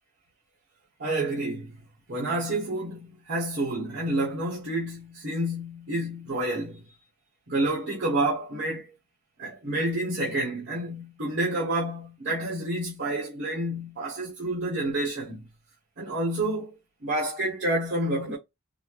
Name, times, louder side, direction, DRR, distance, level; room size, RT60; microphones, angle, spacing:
voice 1, 1.0-1.8 2.1-6.9 7.5-8.9 9.4-15.5 16.0-18.4, right 1 dB, 55° right, 1.2 m, -29 dB
4.1 x 2.1 x 3.1 m
head